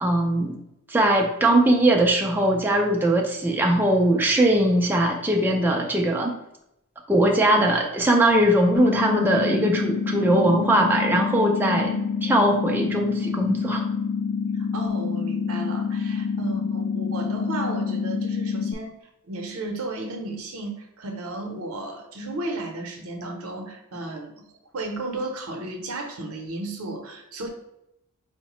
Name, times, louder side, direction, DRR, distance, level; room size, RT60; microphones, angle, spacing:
voice 1, 0.0-0.6 0.9-6.4 7.1-11.9 12.3-13.8, right 1 dB, 10° right, 0 dB, 0.3 m, -20 dB
sound 1, 8.7-18.7, left 6 dB, 70° left, 0.3 m, -27 dB
voice 2, 14.5-18.9 19.3-27.5, right 2 dB, 75° right, 3 dB, 0.6 m, -34 dB
4.6 x 2.1 x 2.9 m, 0.82 s
head